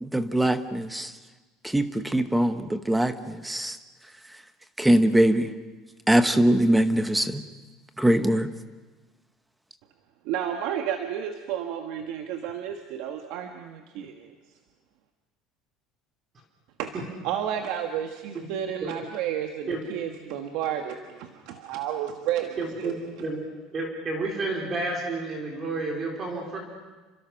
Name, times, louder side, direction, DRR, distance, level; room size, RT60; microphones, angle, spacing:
voice 1, 0.0-1.1 1.6-3.8 4.8-5.5 6.1-7.4 8.0-8.5, right 1 dB, 5° right, 10 dB, 1.0 m, -22 dB
voice 2, 10.2-14.3 16.8-16.9 17.2-23.0, right 9 dB, 60° right, 5 dB, 1.5 m, -31 dB
voice 3, 22.6-23.4 23.7-26.6, right 3 dB, 25° right, 0 dB, 3.8 m, -30 dB
29.5 x 25.5 x 5.9 m, 1.3 s
cardioid pair, 175°, 0 cm